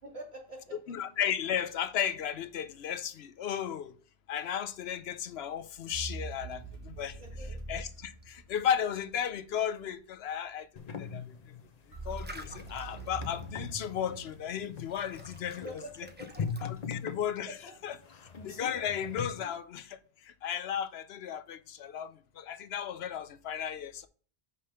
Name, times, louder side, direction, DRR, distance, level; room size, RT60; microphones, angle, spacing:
voice 1, 0.0-0.8 7.2-7.6 15.6-16.4 17.4-17.5 19.3-19.5, right 1 dB, 80° right, 2.9 m, -46 dB
voice 2, 0.9-3.9 4.3-7.2 7.7-10.7 11.0-11.4 12.0-15.7 16.6-17.5 17.8-18.0 18.4-24.1, left 9 dB, 80° left, 0.9 m, -34 dB
sound 1, 5.6-17.3, right 1 dB, 10° right, 0.7 m, -55 dB
sound 2, 5.9-8.9 11.9-15.3, right 3 dB, 60° right, 1.7 m, -43 dB
sound 3, 10.8-19.3, left 6 dB, 45° left, 0.8 m, -41 dB
5.6 x 5.1 x 5.5 m
omnidirectional pair, 1.1 m